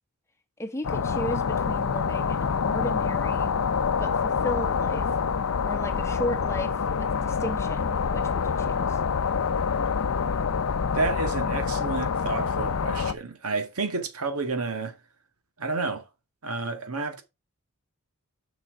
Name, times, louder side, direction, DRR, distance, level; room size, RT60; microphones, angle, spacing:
voice 1, 0.6-3.5 4.0-5.1 5.6-9.0, equal, 15° left, 1.1 m, -34 dB
sound 1, 0.8-13.1, left 6 dB, 70° left, 0.6 m, -26 dB
voice 2, 10.9-15.0 15.6-16.1 16.4-17.2, right 3 dB, 85° right, 1.8 m, -30 dB
6.4 x 6.1 x 4.7 m
head